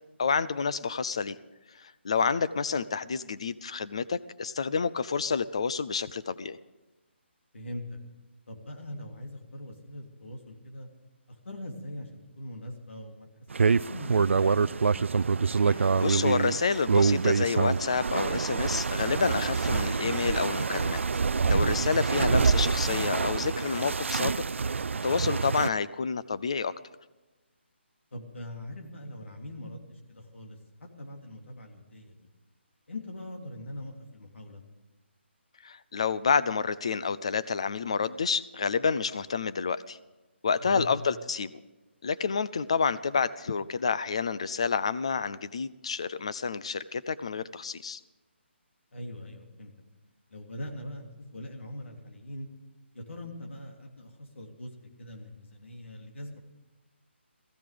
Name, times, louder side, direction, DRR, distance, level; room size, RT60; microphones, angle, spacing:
voice 1, 0.2-1.4 1.8-6.6 15.6-21.0 21.4-24.4 25.0-26.7 35.6-40.0 40.4-41.5 42.0-48.0, left 5 dB, 30° left, 16 dB, 0.4 m, -29 dB
voice 2, 7.5-8.0 8.5-10.9 11.3-13.3 13.7-14.9 28.1-32.2 32.9-34.6 40.6-40.9 48.9-49.7 50.3-52.5 52.9-56.4, left 1 dB, 85° left, 2 dB, 3.1 m, -42 dB
sound 1, 13.5-25.7, right 5 dB, 85° right, 0.4 m, -26 dB
17.5 x 15.5 x 5.1 m, 1.1 s
hypercardioid pair, 180°, 6 cm